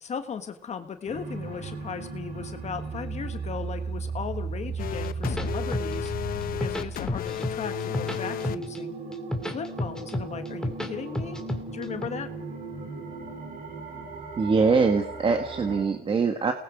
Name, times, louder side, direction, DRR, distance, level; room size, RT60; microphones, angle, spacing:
voice 1, 0.0-9.0 9.5-11.4 11.7-12.3, left 6 dB, 40° left, 8 dB, 1.5 m, -37 dB
sound 1, 1.1-15.8, right 4 dB, 60° right, 7.5 m, -36 dB
sound 2, 4.8-8.6, left 10 dB, 60° left, 1.0 m, -33 dB
sound 3, 5.0-6.1 6.4-7.5 7.8-8.8 9.1-10.9 11.1-12.1, left 1 dB, 5° left, 2.5 m, -30 dB
voice 2, 14.4-16.5, right 4 dB, 30° right, 5 dB, 1.7 m, -23 dB
29.0 x 19.5 x 5.1 m, 0.79 s
cardioid pair, 110°, 17 cm